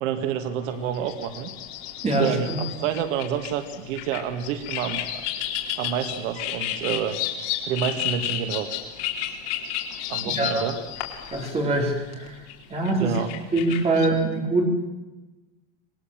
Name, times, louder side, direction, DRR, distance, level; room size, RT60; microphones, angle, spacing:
voice 1, 0.0-1.5 2.2-5.2 5.8-7.2 7.6-8.7 10.1-10.8 13.0-13.3, right 9 dB, 70° right, 8 dB, 2.1 m, -28 dB
sound 1, 0.7-14.1, left 11 dB, 60° left, 4.1 m, -32 dB
voice 2, 2.0-2.6 10.3-10.6 11.3-12.4 12.7-13.2 13.5-14.6, right 2 dB, 15° right, 1 dB, 4.0 m, -24 dB
26.5 x 20.5 x 7.4 m, 1.1 s
cardioid pair, 175°, 38 cm